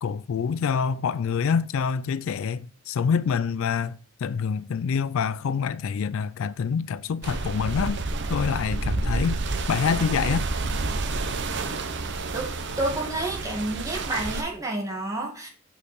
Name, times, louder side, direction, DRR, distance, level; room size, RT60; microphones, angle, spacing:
voice 1, 0.0-8.0 8.3-9.4 9.7-10.5, left 6 dB, 70° left, 0.4 m, -26 dB
sound 1, 7.2-14.4, right 3 dB, 60° right, 0.8 m, -29 dB
voice 2, 12.8-15.5, right 1 dB, 15° right, 2.0 m, -29 dB
6.4 x 5.6 x 4.2 m
head